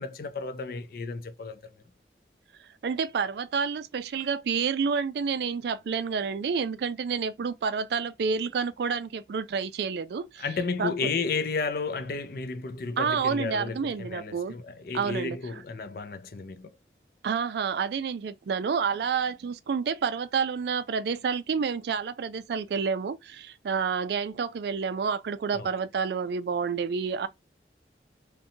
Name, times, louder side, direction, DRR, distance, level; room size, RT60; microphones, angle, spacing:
voice 1, 0.0-1.6 10.4-16.7 25.5-25.7, left 4 dB, 55° left, 0.4 m, -32 dB
voice 2, 2.8-10.5 10.8-10.9 13.0-14.5 14.9-15.4 17.2-27.3, right 6 dB, 70° right, 0.3 m, -29 dB
2.7 x 2.2 x 2.6 m
head